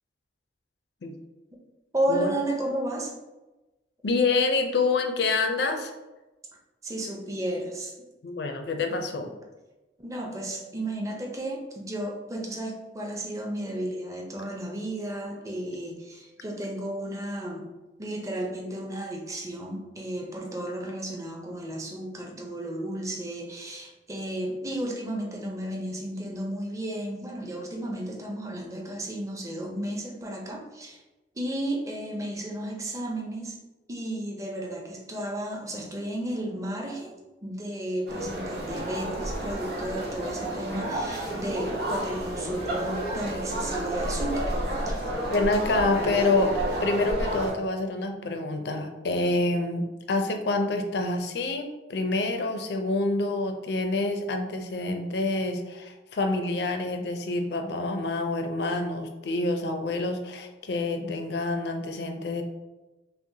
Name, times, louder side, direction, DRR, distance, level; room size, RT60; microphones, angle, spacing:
voice 1, 1.9-3.1 6.8-7.9 10.0-17.7 18.0-31.0 31.3-33.6 33.9-37.2 37.4-44.5 44.8-45.0, right 1 dB, 15° right, 0 dB, 0.5 m, -33 dB
voice 2, 4.0-5.9 8.2-9.3 45.3-46.5 46.8-62.4, left 2 dB, 65° left, 5 dB, 0.5 m, -27 dB
sound 1, 38.1-47.5, right 1 dB, 60° right, 0.9 m, -31 dB
5.6 x 2.1 x 2.7 m, 1.1 s
head